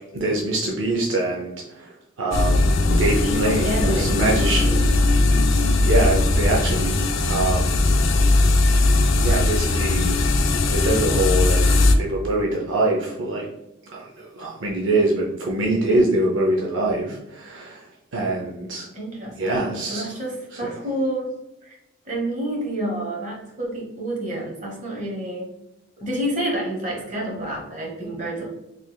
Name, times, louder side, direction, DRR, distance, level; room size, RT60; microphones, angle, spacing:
voice 1, 0.1-1.9 2.2-4.9 5.8-7.0 7.3-7.8 9.2-10.1 10.7-13.5 13.9-17.9 18.1-18.9 19.4-20.1 20.6-20.7, right 2 dB, 70° right, -2 dB, 0.5 m, -24 dB
sound 1, 2.3-11.9, left 2 dB, 70° left, 0.4 m, -19 dB
voice 2, 3.0-4.8 18.9-21.3 21.6-21.8 22.0-25.5 26.0-28.5, right 1 dB, 40° right, -2 dB, 1.1 m, -29 dB
3.9 x 3.3 x 2.2 m, 0.89 s
head